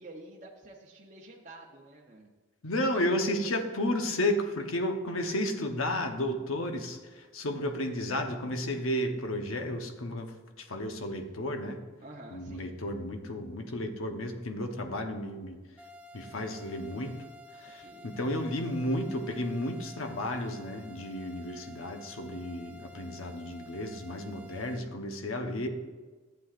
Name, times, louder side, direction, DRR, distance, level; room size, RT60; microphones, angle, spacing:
voice 1, 0.0-2.3 12.0-12.7 17.8-18.1, right 2 dB, 35° right, -2 dB, 0.8 m, -49 dB
voice 2, 2.6-11.8 12.3-15.6 16.1-17.2 17.5-25.7, left 1 dB, 90° left, 5 dB, 1.0 m, -33 dB
sound 1, 15.8-24.8, left 1 dB, 5° right, 0.5 m, -51 dB
11.5 x 8.0 x 2.5 m, 1.3 s
head